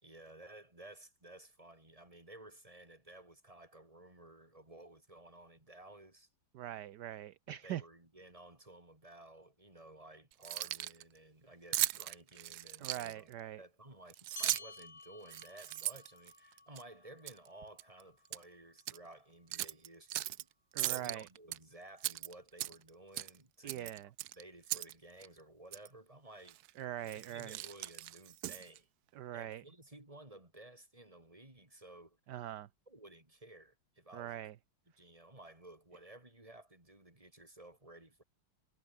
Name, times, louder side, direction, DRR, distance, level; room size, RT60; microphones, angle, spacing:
voice 1, 0.0-6.3 7.5-20.5 20.8-24.0 24.3-26.6 27.0-28.9 29.3-32.2 32.9-34.4 35.0-38.2, right 1 dB, 15° right, 4.2 m, -55 dB
voice 2, 6.5-7.8 12.8-13.6 20.7-21.3 23.6-24.1 26.8-27.6 29.1-29.6 32.3-32.7 34.1-34.5, right 12 dB, 65° right, 1.2 m, -42 dB
Keys jangling, 10.3-11.0 11.7-13.3 14.1-14.8 15.3-16.8 17.3-17.5 17.8-18.4 18.8-19.0 19.5-20.4 20.8-21.6 22.0-22.9 23.1-23.4 23.7-24.9 25.2-25.3 25.7-25.9 26.5-26.7 27.0-28.8, right 15 dB, 85° right, 0.8 m, -38 dB
sound 1, 14.4-19.2, left 3 dB, 30° left, 2.6 m, -54 dB
omnidirectional pair, 2.3 m